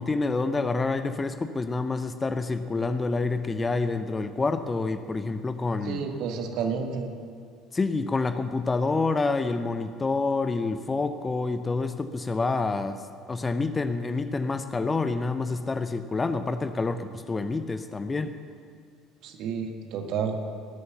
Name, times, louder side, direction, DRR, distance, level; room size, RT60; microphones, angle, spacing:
voice 1, 0.0-6.0 7.7-13.0 13.3-18.3, left 3 dB, 20° left, 10 dB, 0.8 m, -27 dB
voice 2, 5.8-7.1 19.2-20.4, right 6 dB, 55° right, 5 dB, 1.6 m, -30 dB
18.0 x 7.9 x 7.0 m, 2.1 s
figure-of-eight pair, 60°, 0 cm